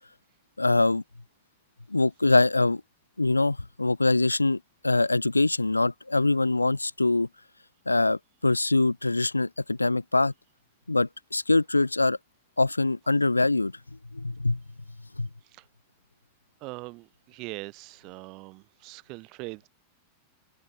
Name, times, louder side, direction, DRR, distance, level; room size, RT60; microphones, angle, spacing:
voice 1, 0.6-1.0 1.9-2.8 3.2-7.3 7.9-10.3 10.9-12.2 12.6-13.7 14.1-14.6 15.2-15.3, left 2 dB, 85° left, 0.4 m, -23 dB
voice 2, 16.6-19.7, right 25 dB, 40° right, 1.7 m, -41 dB
open air
figure-of-eight pair, 90°, 0 cm